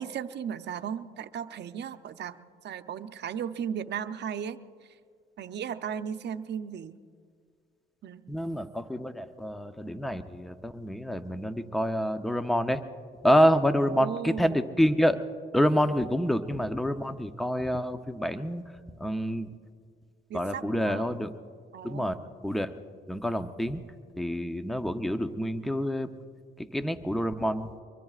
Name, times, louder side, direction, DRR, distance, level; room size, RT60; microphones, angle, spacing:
voice 1, 0.0-2.4 2.6-4.6 5.4-7.0 8.0-8.3 13.9-14.7 20.3-21.1 21.7-22.2, right 8 dB, 60° right, 9 dB, 0.7 m, -36 dB
voice 2, 8.3-12.8 13.2-15.2 15.5-18.7 19.0-19.5 20.3-21.3 21.8-22.2 22.4-22.7 23.1-23.8 24.2-26.1 26.6-27.7, equal, ahead, 9 dB, 0.7 m, -27 dB
24.5 x 22.5 x 2.4 m, 2.1 s
cardioid pair, 90°, 20 cm